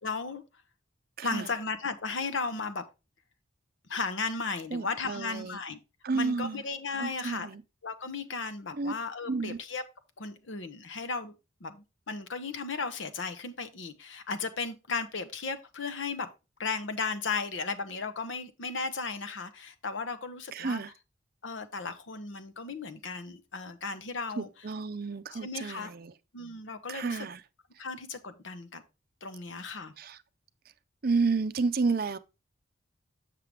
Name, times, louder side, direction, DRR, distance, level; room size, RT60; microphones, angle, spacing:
voice 1, 0.0-0.4 1.2-2.8 3.9-5.8 6.1-7.5 7.8-9.8 10.2-11.3 11.6-16.3 16.6-20.8 21.4-24.5 25.3-25.9 26.3-27.3 27.8-28.8 29.2-29.9, left 4 dB, 70° left, 0.9 m, -35 dB
voice 2, 1.2-1.5 4.7-5.6 6.0-6.6 7.0-7.6 8.7-8.9 9.3-9.6 20.5-20.9 24.4-26.1 26.9-27.4 30.0-30.2 31.0-32.2, right 4 dB, 50° right, 0.5 m, -31 dB
7.5 x 6.6 x 3.3 m
head